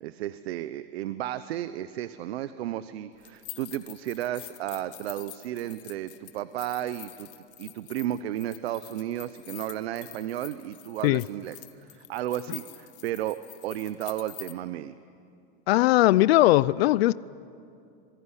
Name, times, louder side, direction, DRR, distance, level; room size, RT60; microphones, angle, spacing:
voice 1, 0.0-7.3 7.6-13.4 13.6-15.0, right 12 dB, 85° right, 0.9 m, -33 dB
sound 1, 3.2-14.5, left 19 dB, 60° left, 1.3 m, -46 dB
voice 2, 15.7-17.1, left 17 dB, 80° left, 0.6 m, -19 dB
26.0 x 21.5 x 9.9 m
supercardioid pair, 150°, 30 cm